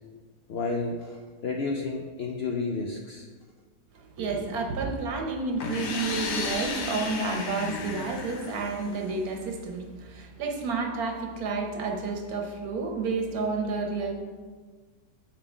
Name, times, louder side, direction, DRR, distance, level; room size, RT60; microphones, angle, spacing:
voice 1, 0.5-3.3, left 3 dB, 80° left, 1 dB, 0.5 m, -31 dB
voice 2, 4.2-14.1, right 4 dB, 70° right, 3 dB, 1.3 m, -30 dB
sound 1, 5.6-9.3, left 3 dB, 65° left, 1.1 m, -33 dB
7.3 x 3.8 x 4.9 m, 1.5 s
omnidirectional pair, 1.7 m